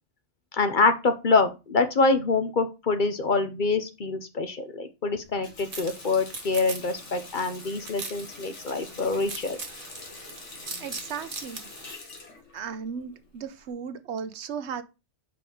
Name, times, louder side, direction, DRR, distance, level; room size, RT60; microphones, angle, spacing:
voice 1, 0.5-9.6, left 3 dB, 50° left, 0.8 m, -25 dB
Water tap faucet, 5.2-13.7, left 3 dB, 90° left, 2.0 m, -45 dB
sound 1, 5.7-11.9, right 3 dB, 50° right, 1.5 m, -41 dB
voice 2, 10.8-11.7 12.5-14.8, right 7 dB, 75° right, 1.0 m, -36 dB
5.3 x 4.5 x 5.0 m
omnidirectional pair, 1.2 m